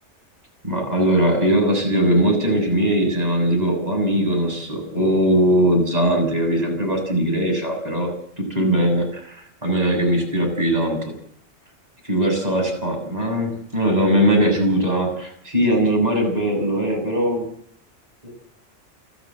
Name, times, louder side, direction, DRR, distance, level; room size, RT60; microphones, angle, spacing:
voice 1, 0.6-8.1 8.4-11.0 12.1-17.4 18.2-18.3, right 1 dB, 30° right, 2 dB, 7.6 m, -20 dB
29.0 x 12.5 x 7.7 m, 0.66 s
omnidirectional pair, 1.3 m